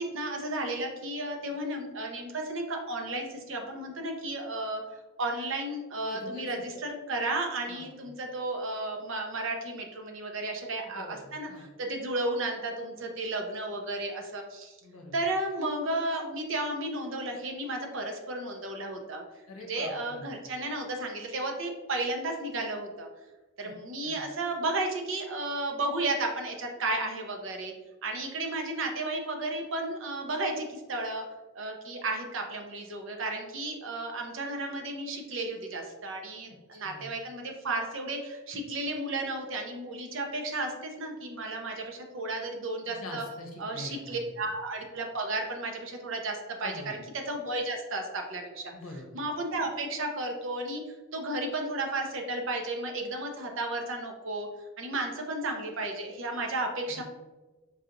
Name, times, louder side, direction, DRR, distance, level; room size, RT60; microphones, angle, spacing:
voice 1, 0.0-4.8 5.2-11.5 11.8-14.8 15.1-19.2 19.7-23.1 23.6-27.7 28.0-31.2 31.5-43.2 43.6-48.7 49.1-50.8 51.1-54.5 54.8-57.0, right 2 dB, 60° right, 3 dB, 0.6 m, -33 dB
voice 2, 6.0-6.8 7.7-8.1 10.8-11.7 14.8-15.1 19.5-20.4 23.6-23.7 24.0-24.3 36.7-37.1 43.0-44.3 46.6-47.0 48.7-49.2 56.9-57.0, left 2 dB, 75° left, 1 dB, 0.7 m, -44 dB
4.7 x 2.8 x 2.5 m, 1.2 s
head